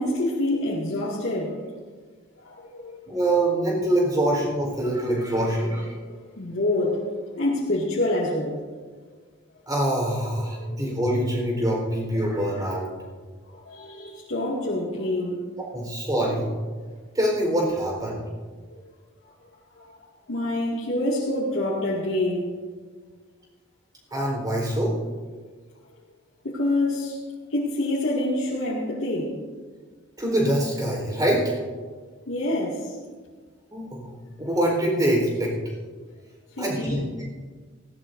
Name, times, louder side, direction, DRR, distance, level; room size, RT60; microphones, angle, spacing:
voice 1, 0.0-1.7 2.4-3.2 4.8-4.9 6.1-7.0 7.4-8.9 10.6-10.8 13.5-15.4 19.7-20.0 20.3-22.5 26.4-27.2 27.5-29.3 32.3-33.0 36.6-37.0, left 1 dB, 65° left, -7 dB, 2.2 m, -27 dB
voice 2, 3.1-5.9 9.7-12.9 15.6-16.4 17.1-18.2 24.1-24.9 30.2-31.6 33.7-34.1 34.4-35.5 36.6-37.2, right 1 dB, 20° right, -1 dB, 4.2 m, -24 dB
19.0 x 17.0 x 2.7 m, 1.5 s
head